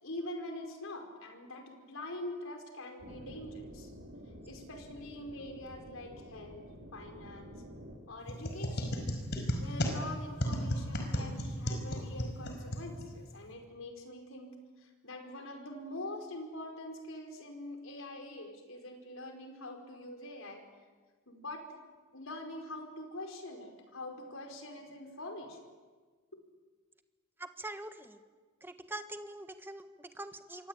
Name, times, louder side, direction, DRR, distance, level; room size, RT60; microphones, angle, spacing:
voice 1, 0.0-3.9 4.5-7.5 8.1-8.8 9.6-20.6 21.3-21.8 22.1-25.6, left 1 dB, 70° left, 4 dB, 5.0 m, -44 dB
sound 1, 3.0-8.0, equal, 70° right, 5.5 m, -50 dB
sound 2, 8.3-13.4, equal, 50° left, 5.1 m, -35 dB
voice 2, 27.4-28.2 28.6-30.7, right 1 dB, 10° right, 8 dB, 1.4 m, -44 dB
27.5 x 23.5 x 9.0 m, 1.4 s
head